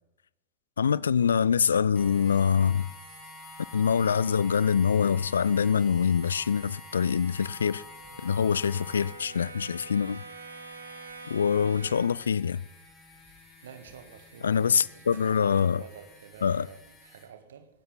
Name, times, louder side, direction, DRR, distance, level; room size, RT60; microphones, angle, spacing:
voice 1, 0.8-2.9 3.7-7.8 8.2-10.2 11.3-12.6 14.4-15.8 16.4-16.7, left 7 dB, 70° left, 0.4 m, -24 dB
sound 1, 1.9-17.2, left 2 dB, 20° left, 6.1 m, -49 dB
Brass instrument, 6.8-12.3, right 3 dB, 80° right, 1.6 m, -46 dB
voice 2, 13.6-17.7, right 7 dB, 65° right, 1.7 m, -49 dB
18.5 x 13.0 x 4.0 m
figure-of-eight pair, 90°, 0 cm